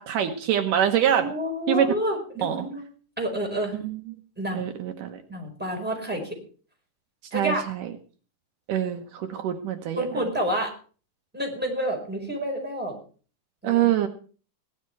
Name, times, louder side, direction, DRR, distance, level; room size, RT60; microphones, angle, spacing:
voice 1, 0.0-1.3 1.7-1.9 2.4-2.6 3.7-4.1 4.5-5.2 7.3-7.9 8.7-10.1 13.6-14.1, right 10 dB, 75° right, 6 dB, 2.6 m, -25 dB
voice 2, 1.1-2.8 3.2-3.7 4.4-4.7 5.3-6.4 7.3-7.6 10.0-10.7 11.3-13.0 13.6-13.8, equal, 5° right, 0 dB, 4.6 m, -29 dB
17.0 x 12.5 x 4.6 m, 0.40 s
omnidirectional pair, 3.9 m